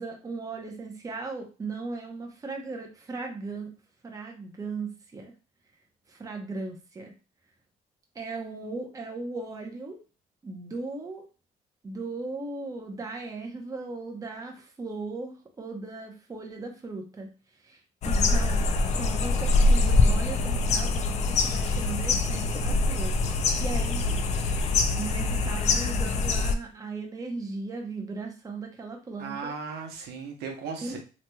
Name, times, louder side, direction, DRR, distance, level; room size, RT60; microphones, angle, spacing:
voice 1, 0.0-3.7 4.0-5.3 6.1-7.1 8.1-10.0 10.4-11.3 11.8-17.3 17.6-17.8 18.1-18.6 19.0-23.1 23.6-24.0 24.9-29.5 30.8-31.0, right 3 dB, 20° right, 2 dB, 0.7 m, -37 dB
sound 1, 18.0-26.5, left 3 dB, 40° left, 0.4 m, -24 dB
voice 2, 29.2-31.0, right 5 dB, 80° right, 3 dB, 0.8 m, -36 dB
3.0 x 2.9 x 2.2 m, 0.34 s
cardioid pair, 110°, 17 cm